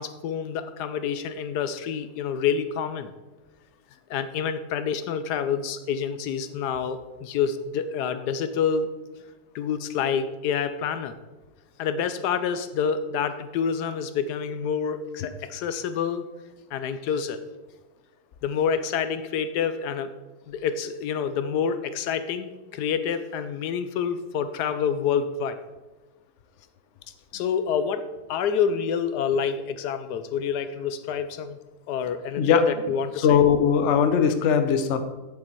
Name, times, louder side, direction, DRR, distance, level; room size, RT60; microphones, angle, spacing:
voice 1, 0.0-3.1 4.1-8.9 9.5-11.1 11.8-16.2 16.7-17.4 18.4-20.1 20.5-25.6 27.3-31.6 31.9-33.4, left 7 dB, 75° left, 11 dB, 1.1 m, -27 dB
voice 2, 33.2-35.0, left 7 dB, 55° left, 8 dB, 0.9 m, -19 dB
8.5 x 7.7 x 4.4 m, 1.2 s
omnidirectional pair, 1.8 m